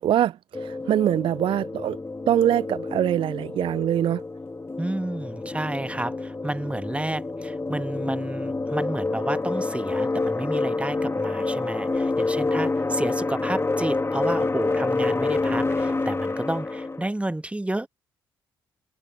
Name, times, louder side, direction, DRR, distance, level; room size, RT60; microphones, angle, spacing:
voice 1, 0.0-2.0 2.3-4.2, right 11 dB, 50° right, 0.4 m, -23 dB
sound 1, 0.5-17.1, left 3 dB, 25° left, 3.1 m, -28 dB
voice 2, 4.8-17.9, right 1 dB, 10° right, 1.5 m, -31 dB
figure-of-eight pair, 40°, 11 cm